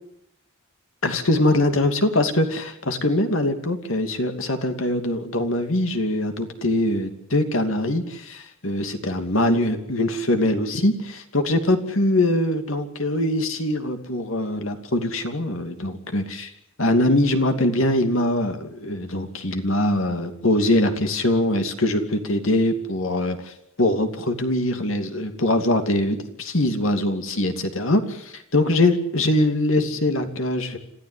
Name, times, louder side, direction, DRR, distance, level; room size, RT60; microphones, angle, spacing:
voice 1, 1.0-16.5 16.8-30.8, left 1 dB, 65° left, 7 dB, 2.7 m, -22 dB
27.0 x 16.0 x 9.8 m, 0.78 s
head